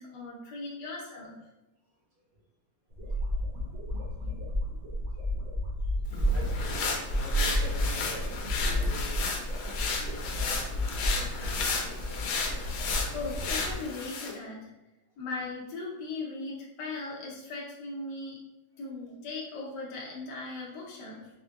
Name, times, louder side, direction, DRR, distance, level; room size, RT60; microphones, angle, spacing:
voice 1, 0.0-1.4 13.1-14.7 15.2-18.4 18.8-21.3, left 3 dB, 65° left, -4 dB, 1.2 m, -38 dB
sound 1, 2.9-13.7, equal, 75° right, 0.6 m, -32 dB
sound 2, 6.1-14.4, left 4 dB, 85° left, 1.4 m, -33 dB
voice 2, 6.1-9.3 10.0-12.1, right 1 dB, 55° right, -7 dB, 1.4 m, -46 dB
4.4 x 2.7 x 2.3 m, 1.0 s
omnidirectional pair, 2.1 m